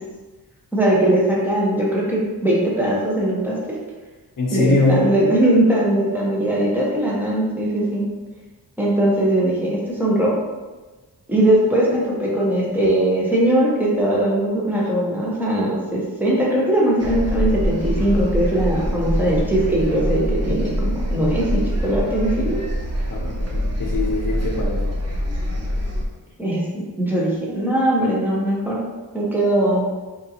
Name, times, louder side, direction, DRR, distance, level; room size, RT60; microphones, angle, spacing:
voice 1, 0.7-3.6 4.5-8.0 8.8-10.3 11.3-22.6 26.4-28.8 29.1-29.9, right 1 dB, 5° right, -5 dB, 0.9 m, -20 dB
voice 2, 4.4-5.2 23.1-24.8, left 2 dB, 50° left, -2 dB, 0.9 m, -22 dB
sound 1, 17.0-26.0, equal, 40° right, 0.6 m, -24 dB
3.5 x 2.7 x 2.8 m, 1.2 s
wide cardioid pair, 85°, 42 cm